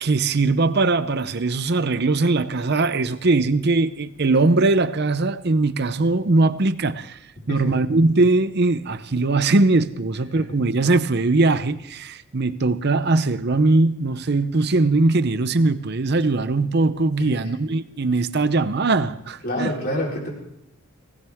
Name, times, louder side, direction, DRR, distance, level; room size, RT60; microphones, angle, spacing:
voice 1, 0.0-7.2 7.5-19.7, right 3 dB, 50° right, 0.7 m, -20 dB
voice 2, 17.2-17.5 19.4-20.3, left 1 dB, 45° left, 4.3 m, -27 dB
20.0 x 18.5 x 3.6 m
head